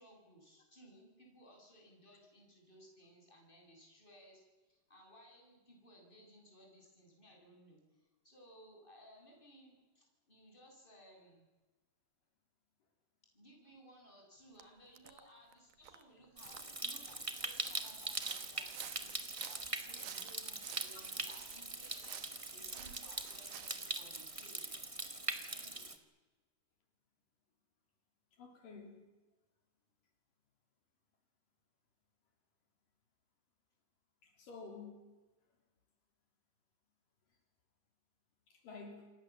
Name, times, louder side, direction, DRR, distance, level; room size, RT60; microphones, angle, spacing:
voice 1, 0.0-4.4 4.7-11.5 13.3-24.9 25.5-25.9, equal, 15° left, 0 dB, 7.9 m, -61 dB
sound 1, 14.6-14.7 14.9-15.2 15.5-17.3 17.6-23.9, right 12 dB, 85° right, 3.0 m, -52 dB
Stream, 16.4-25.9, right 2 dB, 30° right, 0.5 m, -42 dB
voice 2, 28.4-29.0 34.2-35.0 38.5-39.1, left 4 dB, 75° left, 3 dB, 4.9 m, -51 dB
28.5 x 21.0 x 7.5 m, 1.2 s
omnidirectional pair, 4.0 m